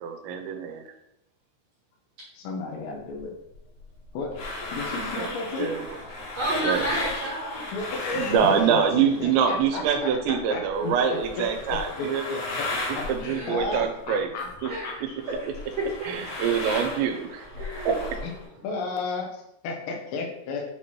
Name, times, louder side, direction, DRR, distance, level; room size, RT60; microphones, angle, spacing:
voice 1, 0.0-0.8 5.2-5.3 5.6-5.8 6.6-6.8 8.1-12.2 13.1-14.3 16.1-18.2, right 7 dB, 85° right, 6 dB, 3.0 m, -25 dB
voice 2, 2.3-3.3 4.1-4.3 4.7-5.7 7.7-12.7 12.9-14.9 18.2-18.3 18.6-20.6, left 3 dB, 90° left, 2 dB, 3.3 m, -33 dB
sound 1, 3.2-9.9 10.1-14.7 15.0-18.5, left 2 dB, 60° left, 2.2 m, -36 dB
voice 3, 6.3-7.6 8.7-8.8 13.2-13.5 14.7-15.5 15.8-16.1 17.6-17.9, right 1 dB, 55° right, -6 dB, 2.0 m, -30 dB
8.0 x 3.1 x 4.3 m, 0.81 s
omnidirectional pair, 5.0 m